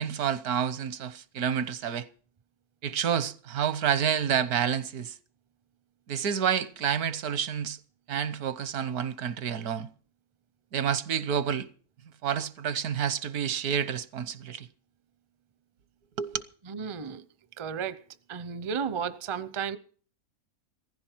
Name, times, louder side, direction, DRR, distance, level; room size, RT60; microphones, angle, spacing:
voice 1, 0.0-2.1 2.8-5.2 6.1-7.8 8.1-9.9 10.7-11.7 12.2-14.7 16.2-16.4, right 8 dB, 80° right, 1.4 m, -29 dB
voice 2, 16.7-17.2 17.6-18.0 18.3-19.8, right 7 dB, 35° right, 0.5 m, -33 dB
16.0 x 15.0 x 4.5 m
omnidirectional pair, 1.6 m